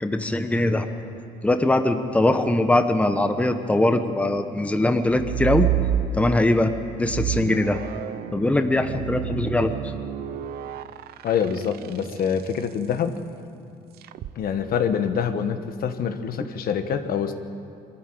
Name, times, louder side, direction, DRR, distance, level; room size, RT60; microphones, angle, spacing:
voice 1, 0.0-0.9 1.4-5.7 6.1-6.7 7.0-7.8 8.3-9.7, left 1 dB, 10° left, 7 dB, 1.0 m, -21 dB
sound 1, 5.1-6.5 7.0-12.5 14.0-14.3, right 11 dB, 65° right, 0.7 m, -29 dB
voice 2, 11.2-13.1 14.3-17.3, left 7 dB, 60° left, 8 dB, 1.4 m, -25 dB
22.5 x 13.5 x 9.2 m, 2.6 s
cardioid pair, 110°, 17 cm